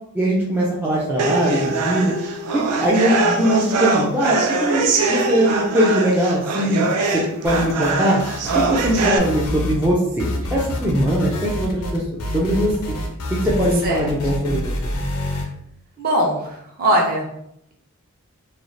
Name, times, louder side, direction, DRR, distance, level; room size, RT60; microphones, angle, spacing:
voice 1, 0.1-2.1 2.5-6.9 7.1-8.2 8.5-13.0 13.3-14.7, equal, 10° right, -6 dB, 0.3 m, -21 dB
sound 1, 1.2-9.2, right 3 dB, 90° right, 0.4 m, -22 dB
sound 2, 7.4-9.9 10.2-15.4, left 1 dB, 90° left, 0.5 m, -27 dB
voice 2, 16.0-17.3, right 1 dB, 40° right, -1 dB, 0.6 m, -21 dB
3.1 x 2.3 x 2.5 m, 0.76 s
head